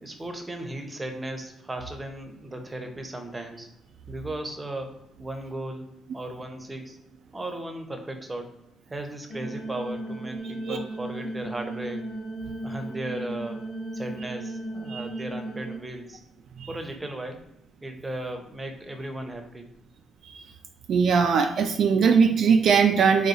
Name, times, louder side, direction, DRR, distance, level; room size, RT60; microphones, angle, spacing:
voice 1, 0.0-3.7 4.1-5.9 6.1-7.0 7.3-8.5 8.9-12.1 12.6-13.6 13.9-16.2 16.7-17.4 17.8-19.7, right 1 dB, 20° right, 5 dB, 0.7 m, -36 dB
sound 1, 9.3-15.8, right 1 dB, 70° left, 1.0 m, -35 dB
voice 2, 20.9-23.3, right 6 dB, 65° right, 6 dB, 0.3 m, -20 dB
3.9 x 2.3 x 4.0 m, 0.85 s
cardioid pair, 90°, 0 cm